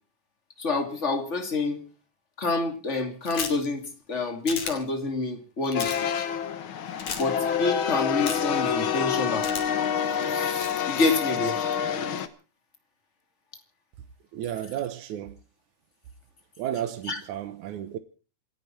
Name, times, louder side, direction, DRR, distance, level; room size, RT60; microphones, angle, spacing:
voice 1, 0.6-1.8 2.4-6.1 7.1-9.5 10.3-11.6 17.1-17.2, left 3 dB, 25° left, 2.6 m, -28 dB
sound 1, 3.3-3.7 4.5-4.7 5.6-6.0 7.0-7.2 8.3-8.6 9.4-9.9 10.5-10.8, left 6 dB, 80° left, 4.3 m, -33 dB
sound 2, 5.7-12.3, left 8 dB, 55° left, 1.6 m, -27 dB
voice 2, 14.3-15.4 16.6-18.0, right 11 dB, 70° right, 2.4 m, -33 dB
27.5 x 10.5 x 4.5 m
omnidirectional pair, 3.6 m